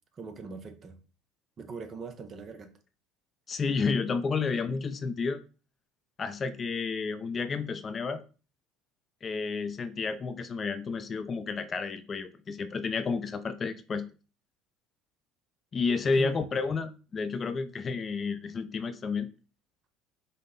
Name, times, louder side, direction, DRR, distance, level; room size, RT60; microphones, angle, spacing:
voice 1, 0.1-1.0 1.6-2.7 16.2-16.4, right 5 dB, 40° right, 0.7 m, -41 dB
voice 2, 3.5-5.4 6.2-8.2 9.2-14.1 15.7-19.3, left 4 dB, 35° left, 0.5 m, -31 dB
5.3 x 2.1 x 3.8 m
supercardioid pair, 85°, 0 cm